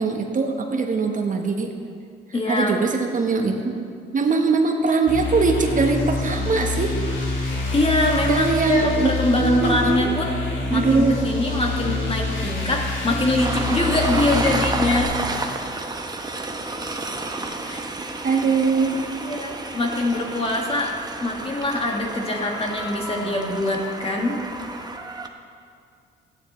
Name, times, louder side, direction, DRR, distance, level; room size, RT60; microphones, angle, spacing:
voice 1, 0.0-1.7 2.5-3.8 4.1-7.0 8.3-9.1 9.4-10.0 10.7-11.2 18.2-19.1, right 4 dB, 40° right, 3 dB, 1.1 m, -22 dB
voice 2, 2.3-2.8 7.7-10.3 10.7-15.2 17.6-17.8 18.3-18.4 19.2-24.4, left 1 dB, 30° left, 0 dB, 1.9 m, -23 dB
sound 1, 5.1-15.0, left 2 dB, 70° left, 2.5 m, -26 dB
Train, 13.4-25.3, right 2 dB, 20° right, 0.9 m, -31 dB
15.0 x 9.7 x 3.2 m, 2.3 s
cardioid pair, 90°, 20 cm